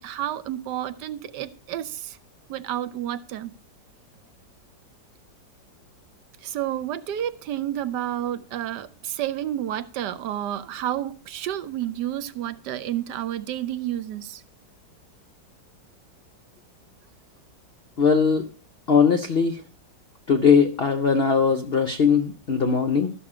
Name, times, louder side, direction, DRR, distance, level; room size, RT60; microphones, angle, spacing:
voice 1, 0.0-2.2 2.5-3.5 6.4-14.4, right 12 dB, 75° right, 1.2 m, -30 dB
voice 2, 18.0-18.4 18.9-19.6 20.3-23.1, left 6 dB, 65° left, 0.6 m, -20 dB
12.5 x 6.1 x 4.8 m
omnidirectional pair, 1.9 m